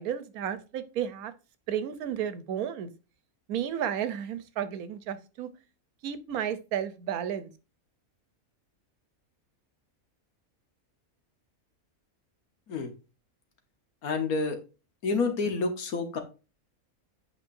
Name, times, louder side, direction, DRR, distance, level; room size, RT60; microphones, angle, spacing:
voice 1, 0.0-1.3 1.7-2.9 3.5-5.5 6.0-7.5, right 9 dB, 90° right, 1.2 m, -32 dB
voice 2, 14.0-14.6 15.0-16.2, left 4 dB, 85° left, 1.6 m, -28 dB
8.2 x 5.1 x 2.6 m
omnidirectional pair, 1.5 m